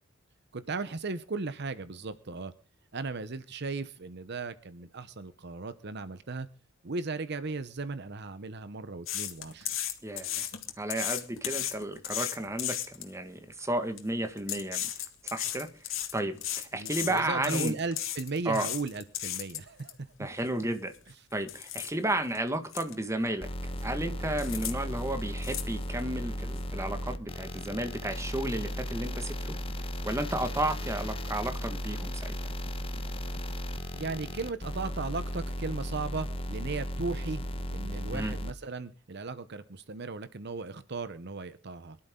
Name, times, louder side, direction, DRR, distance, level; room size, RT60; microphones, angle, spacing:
voice 1, 0.5-2.5 2.9-6.5 6.8-9.7 16.7-20.1 33.9-37.4 37.7-42.0, right 3 dB, 55° right, 13 dB, 0.9 m, -36 dB
sound 1, 9.1-13.1 13.8-14.0 14.4-19.9 20.4-20.5 20.9-21.1 21.5-21.9 22.3-22.4 22.7-22.9 23.2-23.8 24.4-24.7 25.0-26.1 26.6-26.7, left 11 dB, 85° left, 2.2 m, -35 dB
voice 2, 10.0-10.4 10.8-14.9 15.2-17.7 18.5-18.7 20.2-20.9 21.3-29.6 30.0-32.3 38.1-38.3, right 1 dB, 15° right, 8 dB, 1.7 m, -33 dB
sound 2, 23.4-38.5, equal, 30° left, 1.1 m, -35 dB
23.5 x 12.0 x 3.8 m, 0.37 s
head